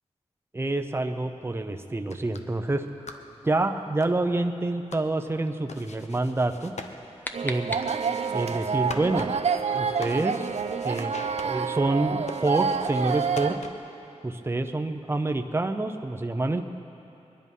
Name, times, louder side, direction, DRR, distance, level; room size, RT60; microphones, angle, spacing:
voice 1, 0.5-6.7 7.4-7.8 8.3-9.3 9.7-10.5 10.8-13.5 14.2-16.7, right 2 dB, 20° right, 6 dB, 0.7 m, -27 dB
sound 1, 1.9-14.0, left 3 dB, 70° left, 0.9 m, -45 dB
sound 2, 6.7-8.4, left 1 dB, 15° left, 0.8 m, -38 dB
sound 3, 7.3-13.6, right 6 dB, 65° right, 0.6 m, -28 dB
22.0 x 11.0 x 5.5 m, 2.9 s
wide cardioid pair, 105°, 12 cm